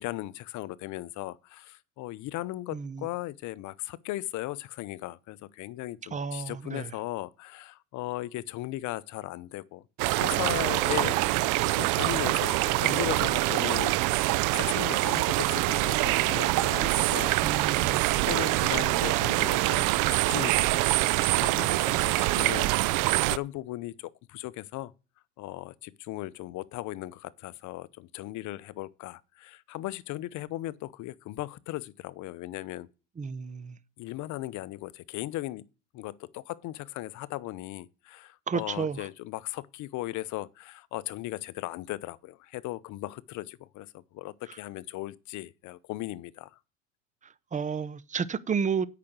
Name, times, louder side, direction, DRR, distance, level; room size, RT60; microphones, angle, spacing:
voice 1, 0.0-9.8 10.2-11.3 11.6-17.3 17.7-24.9 25.4-32.9 34.0-35.6 35.9-46.5, left 17 dB, 50° left, 0.8 m, -37 dB
voice 2, 2.7-3.1 6.1-7.0 17.4-18.1 33.2-33.8 38.5-39.1 44.5-44.6 47.5-48.8, right 6 dB, 20° right, 0.7 m, -32 dB
sound 1, 10.0-23.4, right 19 dB, 55° right, 0.6 m, -25 dB
8.5 x 5.9 x 7.9 m
hypercardioid pair, 85°, 37 cm